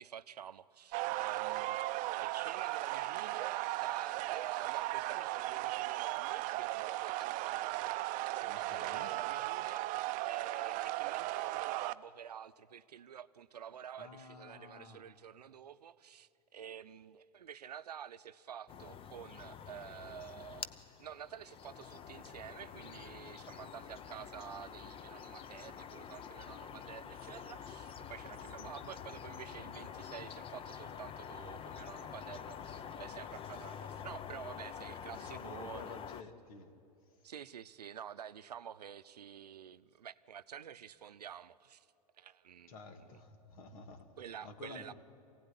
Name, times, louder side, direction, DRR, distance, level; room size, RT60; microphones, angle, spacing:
voice 1, 0.0-35.9 37.2-41.9 42.2-42.7 43.1-43.2 44.2-44.9, right 9 dB, 85° right, 0.6 m, -49 dB
sound 1, 0.9-11.9, right 17 dB, 40° right, 0.6 m, -36 dB
voice 2, 8.4-9.2 14.0-15.0 35.1-36.8 37.0-37.3 42.7-44.9, left 4 dB, 65° left, 2.2 m, -51 dB
sound 2, 18.7-36.2, left 8 dB, 30° left, 0.8 m, -47 dB
23.0 x 17.0 x 9.9 m
hypercardioid pair, 100°, 20 cm